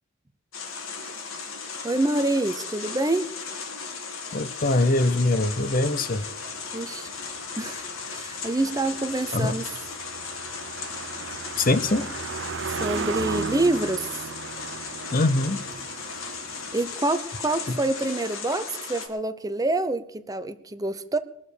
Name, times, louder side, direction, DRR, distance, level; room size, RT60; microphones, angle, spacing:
sound 1, 0.5-19.1, left 5 dB, 85° left, 2.5 m, -36 dB
voice 1, 1.8-3.3 6.7-7.1 7.6-9.6 12.8-14.3 16.7-21.2, right 2 dB, 15° right, 0.6 m, -26 dB
voice 2, 4.3-6.2 9.3-9.5 11.6-12.2 15.1-15.6 17.7-17.8, left 2 dB, 45° left, 0.7 m, -23 dB
Car passing by, 5.8-17.0, right 5 dB, 60° right, 0.5 m, -36 dB
21.5 x 7.2 x 6.7 m
head